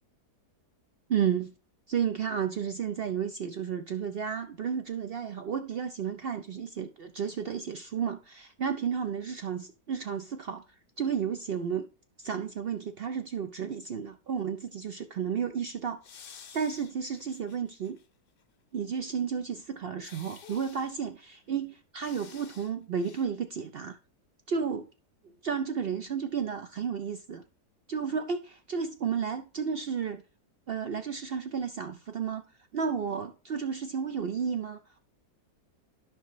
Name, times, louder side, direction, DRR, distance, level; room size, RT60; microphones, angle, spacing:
voice 1, 1.1-1.5 1.9-10.6 11.0-11.9 12.2-16.0 16.5-18.0 18.7-24.0 24.5-24.9 25.4-27.4 27.9-30.2 30.7-32.4 32.7-34.8, right 7 dB, 70° right, 0.5 m, -32 dB
sound 1, 16.0-18.1 18.4-18.5 20.0-21.0 22.0-22.7 23.0-23.3, left 7 dB, 50° left, 0.7 m, -51 dB
12.5 x 5.5 x 3.0 m
omnidirectional pair, 1.7 m